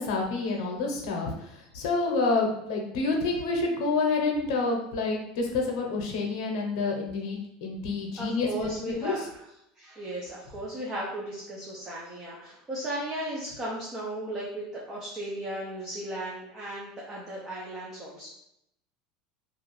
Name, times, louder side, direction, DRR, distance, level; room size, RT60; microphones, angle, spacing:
voice 1, 0.0-9.1, left 3 dB, 75° left, 1 dB, 0.7 m, -28 dB
voice 2, 8.2-9.2 9.8-18.3, right 1 dB, 15° right, -5 dB, 0.5 m, -36 dB
2.5 x 2.3 x 3.1 m, 0.80 s
cardioid pair, 165°, 3 cm